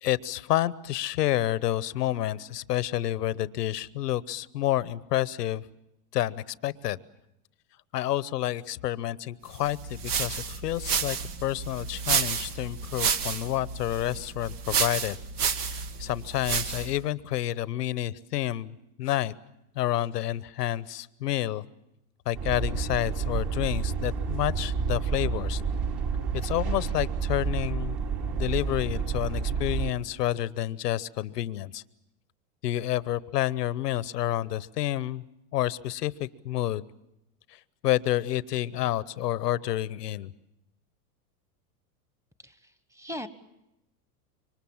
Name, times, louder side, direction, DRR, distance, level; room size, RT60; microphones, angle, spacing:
voice 1, 0.0-5.6 6.1-7.0 7.9-11.2 11.4-15.2 15.6-19.3 19.7-21.6 22.3-25.6 26.3-28.0 28.3-31.8 32.6-35.2 35.5-36.8 37.5-40.3, left 13 dB, 90° left, 18 dB, 1.0 m, -29 dB
sound 1, 9.6-17.0, right 6 dB, 75° right, 2.1 m, -30 dB
sound 2, 22.3-29.9, right 5 dB, 40° right, 2.5 m, -29 dB
voice 2, 42.4-43.3, left 1 dB, 5° right, 13 dB, 1.3 m, -39 dB
27.0 x 24.5 x 7.2 m, 0.88 s
hypercardioid pair, 120°, 46 cm